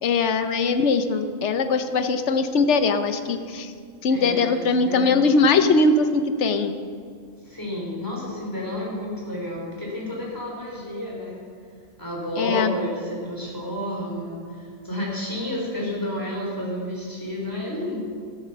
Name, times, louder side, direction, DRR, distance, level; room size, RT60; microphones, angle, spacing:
voice 1, 0.0-3.7 4.0-6.7 12.4-12.7, left 4 dB, 55° left, 9 dB, 1.0 m, -21 dB
voice 2, 4.1-5.3 7.4-11.4 12.0-18.0, equal, 15° left, -4 dB, 3.5 m, -31 dB
13.0 x 8.3 x 6.8 m, 2.2 s
omnidirectional pair, 1.5 m